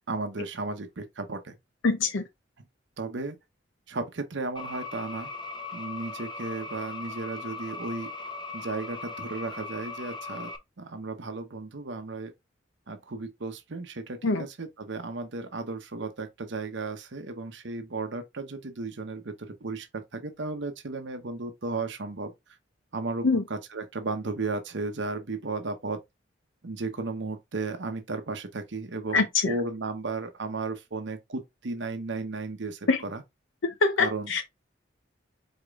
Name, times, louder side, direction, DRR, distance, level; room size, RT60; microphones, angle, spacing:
voice 1, 0.1-1.5 3.0-3.4 3.9-5.3 5.7-8.1 8.5-10.5 10.8-12.3 12.9-22.3 22.9-26.0 26.6-33.2 34.0-34.3, right 3 dB, 75° right, 0.8 m, -34 dB
voice 2, 1.8-2.2 14.2-14.5 23.2-23.4 29.1-29.5 32.9-33.0 33.6-34.4, left 3 dB, 90° left, 0.7 m, -24 dB
sound 1, 4.6-10.6, left 3 dB, 25° left, 0.8 m, -39 dB
5.1 x 4.3 x 2.4 m
head